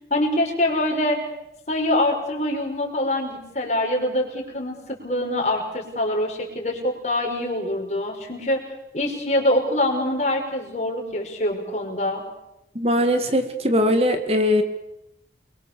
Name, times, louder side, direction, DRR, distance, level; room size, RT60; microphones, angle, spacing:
voice 1, 0.1-1.2 1.7-8.6 8.9-12.2, left 1 dB, 40° left, 2 dB, 5.7 m, -24 dB
voice 2, 12.8-14.6, left 1 dB, 35° right, 7 dB, 2.1 m, -20 dB
29.0 x 23.0 x 7.0 m, 0.86 s
head